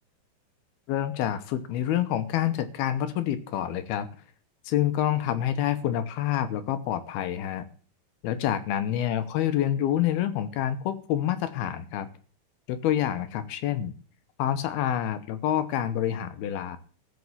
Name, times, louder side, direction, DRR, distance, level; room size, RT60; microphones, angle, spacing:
voice 1, 0.9-4.1 4.7-7.6 8.2-12.1 12.7-13.9 14.4-16.8, left 11 dB, 75° left, 11 dB, 2.8 m, -27 dB
14.5 x 6.3 x 7.2 m, 0.42 s
omnidirectional pair, 4.7 m